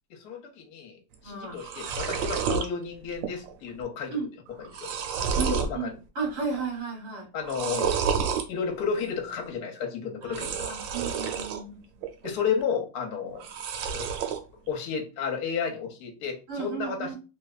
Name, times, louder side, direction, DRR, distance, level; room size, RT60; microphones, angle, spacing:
voice 1, 0.1-4.2 4.6-4.9 5.4-5.9 7.3-8.0 8.5-10.8 12.2-13.5 13.9-14.1 14.7-17.1, left 6 dB, 65° left, 2 dB, 1.2 m, -32 dB
sound 1, 1.1-1.2 1.5-2.7 3.1-3.5 3.8-3.9 4.5-5.8 6.2-6.7 7.4-8.5 10.2-11.6 12.0-12.6 13.4-14.4, right 6 dB, 80° right, 1.3 m, -30 dB
voice 2, 1.2-1.6 4.1-4.3 5.4-7.3 10.2-12.0 16.5-17.2, right 5 dB, 50° right, -1 dB, 1.9 m, -34 dB
3.3 x 3.0 x 2.4 m, 0.32 s
omnidirectional pair, 2.1 m